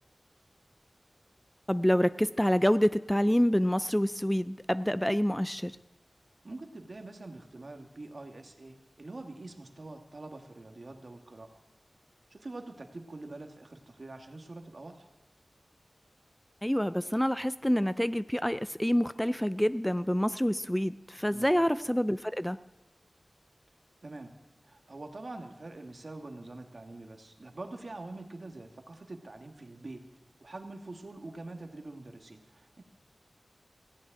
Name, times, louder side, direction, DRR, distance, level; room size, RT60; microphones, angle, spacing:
voice 1, 1.7-5.8 16.6-22.6, equal, 5° left, 14 dB, 0.4 m, -27 dB
voice 2, 6.4-11.5 12.3-15.1 21.3-21.5 24.0-24.3 24.6-30.0 30.4-32.8, right 2 dB, 60° right, 4 dB, 1.7 m, -45 dB
15.5 x 7.2 x 8.9 m, 1.1 s
wide cardioid pair, 50°, 0 cm